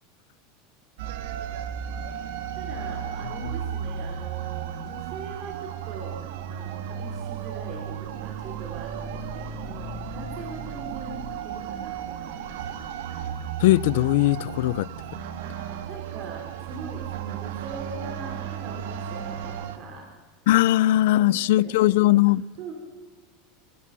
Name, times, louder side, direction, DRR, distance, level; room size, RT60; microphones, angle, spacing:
sound 1, 1.0-19.8, right 8 dB, 75° right, 2.1 m, -34 dB
voice 1, 2.6-6.2 6.5-12.5 15.4-20.1 21.1-21.9 22.6-22.7, right 3 dB, 40° right, 4.1 m, -41 dB
voice 2, 13.6-14.9 20.5-22.4, left 16 dB, 70° left, 0.5 m, -19 dB
29.5 x 14.5 x 6.2 m
supercardioid pair, 155°, 0 cm